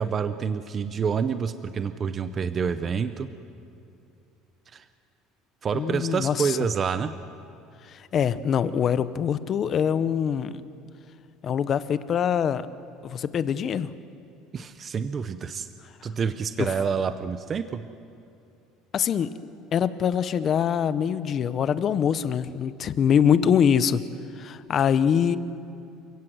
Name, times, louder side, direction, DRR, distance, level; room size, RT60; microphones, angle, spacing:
voice 1, 0.0-3.3 4.7-4.8 5.6-7.1 14.5-15.7 16.0-17.9, right 6 dB, 25° right, 11 dB, 0.6 m, -28 dB
voice 2, 5.7-6.6 7.9-10.5 11.4-12.7 13.0-13.9 16.6-16.7 18.9-19.3 19.7-24.0 24.4-25.4, left 8 dB, 30° left, 14 dB, 0.7 m, -24 dB
29.0 x 17.0 x 7.8 m, 2.6 s
cardioid pair, 175°, 0 cm